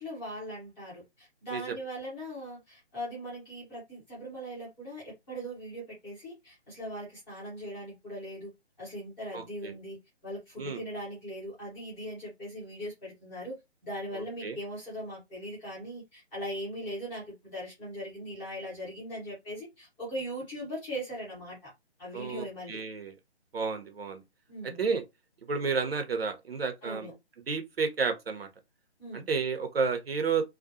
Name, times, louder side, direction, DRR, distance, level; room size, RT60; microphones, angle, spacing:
voice 1, 0.0-8.5 8.8-13.6 13.8-21.7 22.0-22.8 24.5-24.8 26.8-27.1 29.0-29.3, equal, 10° left, 0.8 m, -40 dB
voice 2, 9.3-9.7 10.6-10.8 14.1-14.6 22.1-23.1 23.5-24.2 24.8-25.0 25.5-27.1 27.5-28.5 29.1-30.4, right 5 dB, 60° right, 0.8 m, -31 dB
2.4 x 2.3 x 2.6 m
figure-of-eight pair, 150°, 34 cm